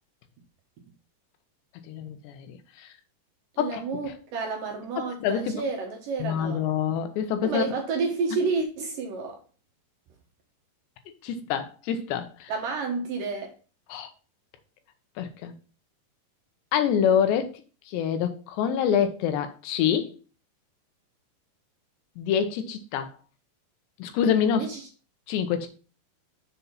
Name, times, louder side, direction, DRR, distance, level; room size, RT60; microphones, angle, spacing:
voice 1, 1.9-2.9 3.6-3.8 5.0-5.5 6.2-7.6 11.2-12.5 13.9-14.1 15.2-15.5 16.7-17.5 17.9-20.2 22.2-23.1 24.0-24.7 25.3-25.7, left 8 dB, 85° left, 3.1 m, -26 dB
voice 2, 3.5-6.6 7.4-9.4 12.5-13.5 24.6-24.9, right 4 dB, 70° right, 2.3 m, -30 dB
7.2 x 4.1 x 5.6 m
omnidirectional pair, 4.9 m